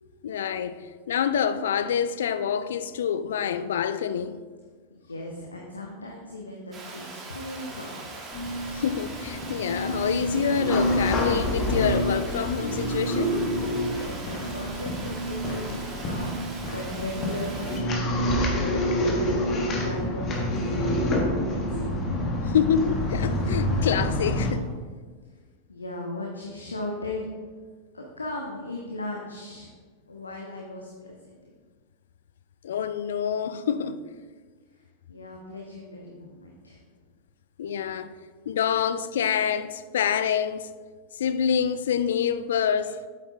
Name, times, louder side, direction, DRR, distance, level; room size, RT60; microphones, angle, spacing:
voice 1, 0.2-4.4 8.7-13.4 22.5-24.7 32.6-34.0 37.6-38.1 38.5-40.7 41.1-43.0, left 8 dB, 60° left, 0.3 m, -26 dB
voice 2, 4.9-8.2 13.8-21.6 25.7-27.3 27.9-29.7 30.1-31.5 35.1-36.8, left 2 dB, 75° left, 0.8 m, -37 dB
Water, 6.7-17.8, right 3 dB, 25° right, 1.5 m, -41 dB
sound 1, 8.3-24.5, equal, 30° left, 1.4 m, -27 dB
8.5 x 7.9 x 2.6 m
figure-of-eight pair, 90°, 0 cm